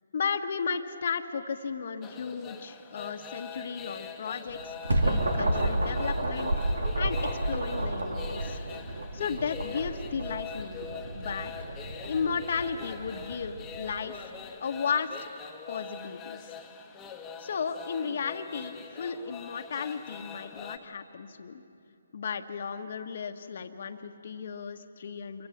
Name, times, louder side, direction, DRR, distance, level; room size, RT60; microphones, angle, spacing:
voice 1, 0.1-6.5 7.0-8.6 9.1-11.5 12.0-14.3 14.6-15.3 15.7-16.5 17.4-21.6 22.1-25.5, left 6 dB, 55° left, 6 dB, 1.4 m, -34 dB
sound 1, 2.0-20.8, left 6 dB, 10° left, 1.5 m, -43 dB
sound 2, 4.5-13.9, right 1 dB, 80° right, 3.1 m, -31 dB
27.5 x 24.0 x 7.3 m, 2.7 s
hypercardioid pair, 150°, 0 cm